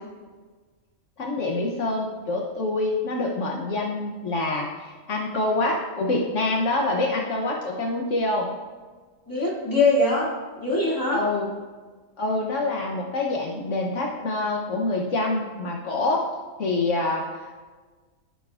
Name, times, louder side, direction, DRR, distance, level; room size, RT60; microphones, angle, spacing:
voice 1, 1.2-8.5 11.1-11.5 12.2-16.3 16.6-17.7, left 2 dB, 70° left, 0 dB, 1.2 m, -26 dB
voice 2, 9.3-10.3 10.6-11.2, left 2 dB, 15° left, -6 dB, 2.5 m, -22 dB
14.0 x 5.8 x 2.4 m, 1.4 s
omnidirectional pair, 1.3 m